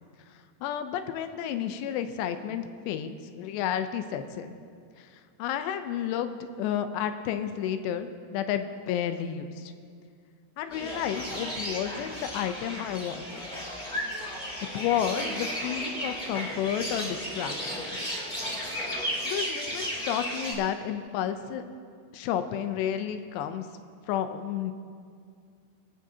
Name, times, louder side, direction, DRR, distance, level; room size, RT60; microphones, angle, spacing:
voice 1, 0.6-4.6 5.0-5.1 5.4-9.7 10.6-13.2 14.3-14.4 14.7-17.9 19.2-21.6 22.1-23.7 24.1-24.7, left 9 dB, 80° left, 9 dB, 2.8 m, -31 dB
sound 1, 10.7-20.5, equal, 15° left, 1.6 m, -34 dB
26.5 x 9.1 x 2.8 m, 2.2 s
omnidirectional pair, 5.0 m